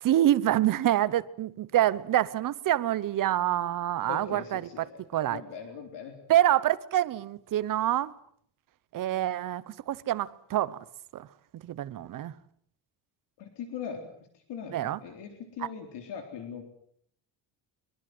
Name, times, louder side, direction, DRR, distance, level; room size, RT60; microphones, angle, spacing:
voice 1, 0.0-4.9 5.1-5.4 6.3-8.1 8.9-10.8 11.1-11.3 11.5-12.3 14.7-15.0, right 12 dB, 45° right, 1.0 m, -26 dB
voice 2, 4.1-6.2 13.4-14.1 14.3-16.6, left 7 dB, 60° left, 3.9 m, -41 dB
23.5 x 23.0 x 7.9 m
cardioid pair, 175°, 47 cm